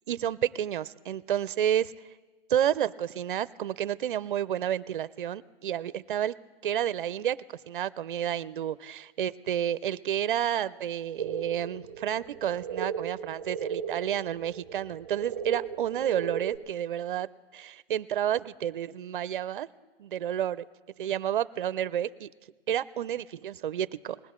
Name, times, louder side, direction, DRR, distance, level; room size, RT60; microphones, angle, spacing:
voice 1, 0.1-1.9 2.5-6.4 6.6-19.7 20.0-20.6 21.0-22.3 22.7-24.2, right 10 dB, 55° right, 17 dB, 0.5 m, -30 dB
sound 1, 11.2-16.6, right 7 dB, 25° right, 0.8 m, -36 dB
20.0 x 16.5 x 3.7 m, 1.3 s
hypercardioid pair, 175°, 30 cm